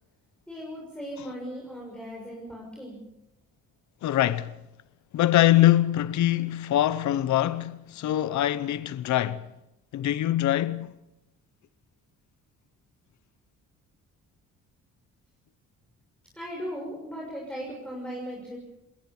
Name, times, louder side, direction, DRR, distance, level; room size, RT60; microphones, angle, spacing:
voice 1, 0.5-3.0 16.3-18.6, equal, 5° left, 6.4 m, -37 dB
voice 2, 4.0-4.5 5.1-9.5 9.9-10.9, left 13 dB, 70° left, 0.8 m, -23 dB
21.0 x 19.5 x 7.2 m
cardioid pair, 90°, 30 cm